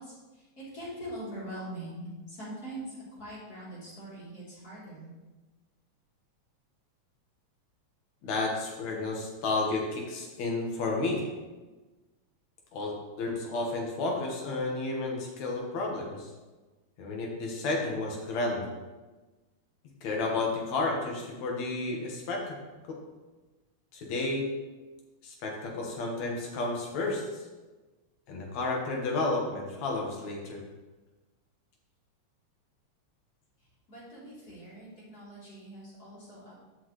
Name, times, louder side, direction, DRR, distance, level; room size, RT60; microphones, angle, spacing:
voice 1, 0.0-5.1 33.9-36.5, right 1 dB, 30° left, -9 dB, 3.8 m, -43 dB
voice 2, 8.2-11.3 12.7-16.3 17.0-18.7 20.0-22.6 23.9-24.4 25.2-27.4 28.3-30.6, left 2 dB, 70° left, -1 dB, 2.8 m, -31 dB
13.0 x 6.5 x 3.2 m, 1.2 s
omnidirectional pair, 3.3 m